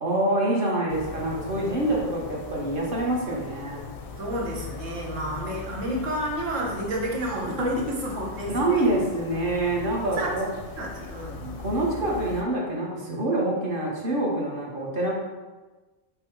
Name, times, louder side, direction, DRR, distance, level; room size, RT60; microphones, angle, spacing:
voice 1, 0.0-3.8 8.5-10.5 11.6-15.1, right 1 dB, 50° right, -3 dB, 1.1 m, -26 dB
sound 1, 0.9-12.4, left 5 dB, 60° left, 0.6 m, -40 dB
voice 2, 4.2-8.9 10.2-10.3 10.8-11.6, right 1 dB, 90° right, -1 dB, 1.3 m, -30 dB
5.3 x 2.1 x 4.5 m, 1.2 s
omnidirectional pair, 1.3 m